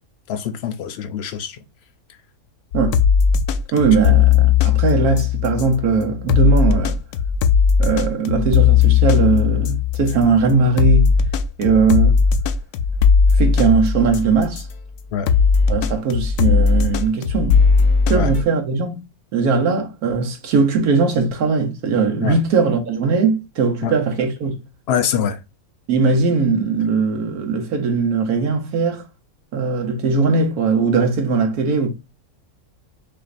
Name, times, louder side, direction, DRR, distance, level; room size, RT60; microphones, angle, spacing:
voice 1, 0.3-1.6 15.1-15.3 18.1-18.3 22.2-22.4 23.8-24.0 24.9-25.4, left 8 dB, 65° left, 0.6 m, -24 dB
sound 1, 2.7-14.7 15.3-18.4, left 6 dB, 80° left, 1.1 m, -17 dB
voice 2, 3.7-7.0 7.8-11.1 11.6-12.2 13.4-14.7 15.7-17.6 18.1-19.0 19.3-24.5 25.9-29.0 29.5-31.9, right 4 dB, 80° right, 1.4 m, -19 dB
6.1 x 2.6 x 2.5 m
omnidirectional pair, 1.6 m